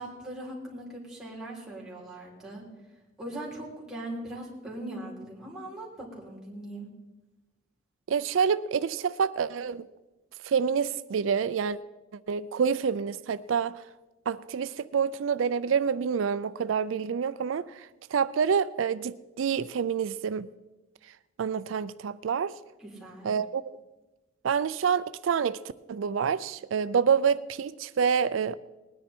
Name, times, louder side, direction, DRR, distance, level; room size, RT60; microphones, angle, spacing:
voice 1, 0.0-2.6 3.2-6.9 22.8-23.3, right 1 dB, ahead, 3.5 m, -40 dB
voice 2, 8.1-9.9 10.4-11.8 12.3-13.8 14.3-17.7 18.1-20.5 21.4-22.5 23.2-23.6 24.4-25.6 25.9-28.6, right 6 dB, 90° right, 0.4 m, -27 dB
19.5 x 10.0 x 4.4 m
head